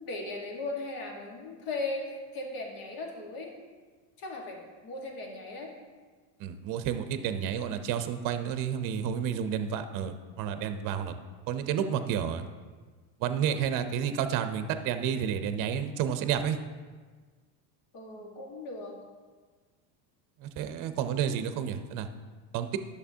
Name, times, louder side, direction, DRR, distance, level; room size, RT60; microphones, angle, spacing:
voice 1, 0.0-3.5 4.2-5.7 17.9-19.0, left 2 dB, 55° left, 0 dB, 1.6 m, -37 dB
voice 2, 6.4-11.1 11.5-12.4 13.2-16.6 20.4-22.1 22.5-22.8, right 8 dB, 50° right, 9 dB, 0.7 m, -30 dB
11.0 x 6.7 x 2.8 m, 1.4 s
cardioid pair, 135°, 42 cm